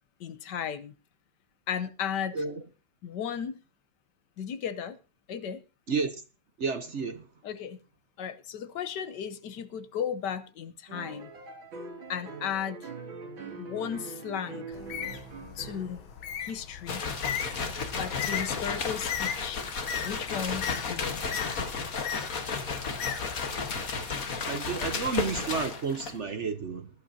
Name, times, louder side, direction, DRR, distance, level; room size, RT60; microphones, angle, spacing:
voice 1, 0.2-0.9 1.7-2.4 3.0-3.6 4.4-5.0 5.3-5.6 7.4-7.8 8.2-11.3 12.1-12.9 13.6-14.8 15.6-16.0 16.4-17.0 17.9-19.6 20.0-21.6, left 8 dB, 65° left, 1.4 m, -35 dB
voice 2, 6.6-7.2 24.4-26.9, right 5 dB, 50° right, 0.9 m, -31 dB
sound 1, 10.9-16.2 18.0-19.0, right 4 dB, 75° right, 3.6 m, -43 dB
Bird, 14.7-23.8, left 8 dB, 85° left, 1.9 m, -38 dB
sound 2, 16.9-26.2, left 5 dB, 45° left, 1.7 m, -33 dB
20.0 x 11.5 x 2.8 m
omnidirectional pair, 2.2 m